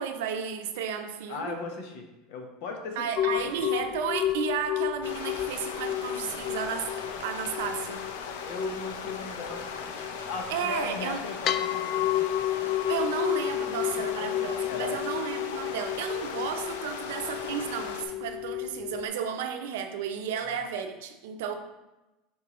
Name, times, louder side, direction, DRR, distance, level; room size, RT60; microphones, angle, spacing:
voice 1, 0.0-1.6 3.0-8.0 10.5-11.2 12.9-21.5, right 7 dB, 80° right, 6 dB, 0.7 m, -33 dB
voice 2, 1.3-3.4 8.4-12.4 14.0-14.3 14.7-15.0, left 4 dB, 65° left, 3 dB, 1.1 m, -38 dB
sound 1, 3.2-19.1, left 12 dB, 40° left, 0.3 m, -32 dB
sound 2, 5.0-18.0, left 5 dB, 85° left, 0.6 m, -39 dB
7.1 x 4.5 x 3.1 m, 1.0 s
supercardioid pair, 130°, 0 cm